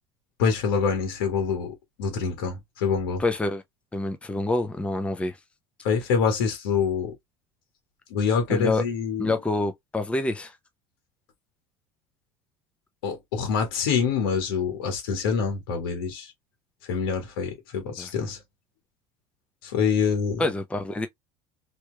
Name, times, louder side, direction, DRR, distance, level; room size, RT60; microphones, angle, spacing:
voice 1, 0.4-3.2 5.8-7.1 8.1-9.3 13.0-16.3 16.9-18.4 19.6-20.4, left 6 dB, 85° left, 1.5 m, -26 dB
voice 2, 3.2-3.6 3.9-5.4 8.5-8.8 9.2-10.6 18.0-18.1 20.4-21.1, left 2 dB, 10° left, 0.7 m, -27 dB
3.2 x 3.1 x 3.2 m
supercardioid pair, 105°, 12 cm